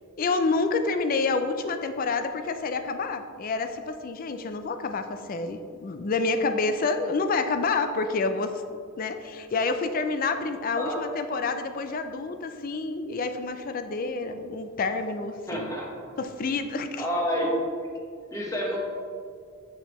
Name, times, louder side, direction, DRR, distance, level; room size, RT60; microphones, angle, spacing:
voice 1, 0.2-8.6 9.0-15.8 16.2-17.0, left 3 dB, 40° left, 8 dB, 0.4 m, -28 dB
voice 2, 15.5-16.1 17.0-17.9 18.3-18.8, equal, 15° left, -3 dB, 1.2 m, -29 dB
6.3 x 6.3 x 3.1 m, 2.2 s
head